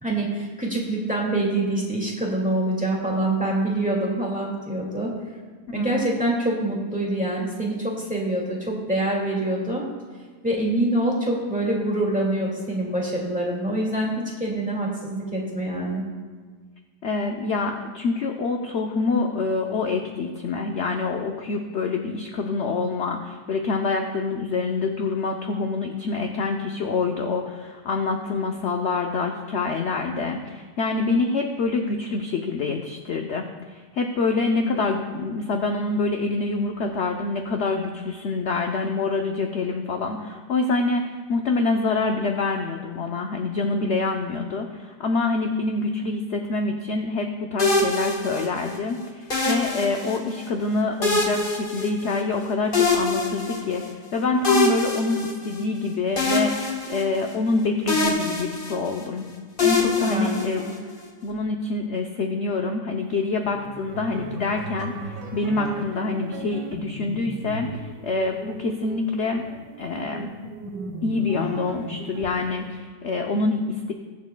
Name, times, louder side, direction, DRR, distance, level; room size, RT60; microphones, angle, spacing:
voice 1, 0.0-5.1 5.7-9.8 10.4-14.1 14.4-16.0 60.0-60.7, right 1 dB, 5° right, -3 dB, 1.9 m, -25 dB
voice 2, 5.7-6.1 17.0-59.3 59.6-60.6 61.2-69.5 69.8-70.3 71.0-73.9, left 3 dB, 60° left, 3 dB, 0.8 m, -26 dB
sound 1, 47.6-48.8 49.3-50.4 51.0-52.4 52.7-53.9 54.4-55.8 56.2-57.6 57.9-59.1 59.6-61.0, left 3 dB, 35° left, 1.3 m, -24 dB
sound 2, 63.4-72.7, right 4 dB, 80° right, 1.4 m, -37 dB
21.5 x 7.3 x 2.2 m, 1.5 s
omnidirectional pair, 1.8 m